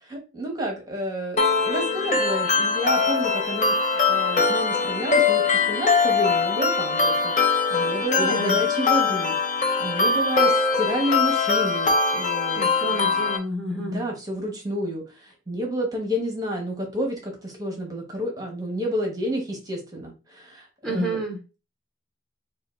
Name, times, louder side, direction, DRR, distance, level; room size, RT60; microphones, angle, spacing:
voice 1, 0.1-12.7 13.7-21.2, equal, 20° right, 1 dB, 1.1 m, -30 dB
sound 1, 1.4-13.4, left 4 dB, 40° left, 0.7 m, -22 dB
voice 2, 8.2-8.6 12.5-14.0 20.8-21.4, right 1 dB, 5° left, 0 dB, 1.1 m, -29 dB
4.9 x 2.3 x 4.3 m, 0.30 s
head